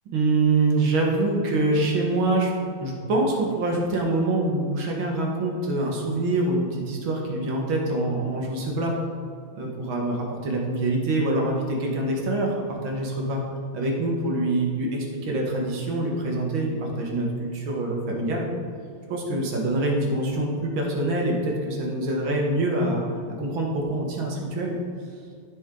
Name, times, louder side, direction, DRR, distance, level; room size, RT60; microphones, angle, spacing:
voice 1, 0.1-2.5 2.8-8.9 9.5-13.4 13.7-18.5 19.1-23.0 23.4-24.7, right 2 dB, 80° right, -1 dB, 2.3 m, -25 dB
14.0 x 5.3 x 3.8 m, 2.2 s
omnidirectional pair, 2.2 m